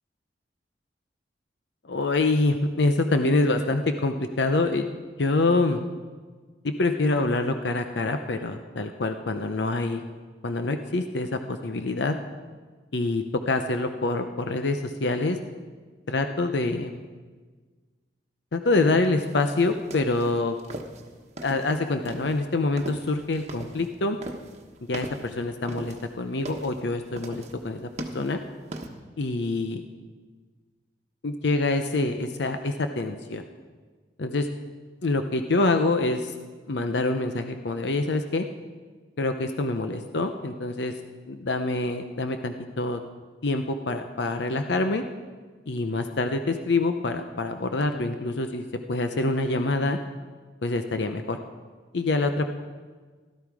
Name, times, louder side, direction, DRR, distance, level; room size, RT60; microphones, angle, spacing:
voice 1, 1.9-4.9 5.2-5.8 6.6-10.0 10.4-12.2 12.9-15.4 16.1-17.0 18.5-20.6 21.4-24.2 24.9-27.9 28.1-28.4 29.2-29.8 31.2-33.4 34.2-34.5 35.0-36.3 36.7-38.5 39.2-40.9 41.3-43.0 43.4-45.0 45.7-50.0 50.6-51.4 51.9-52.5, left 2 dB, 75° left, 7 dB, 0.7 m, -26 dB
sound 1, 19.2-28.9, right 1 dB, 40° right, 1.2 m, -40 dB
16.5 x 12.5 x 4.8 m, 1.4 s
head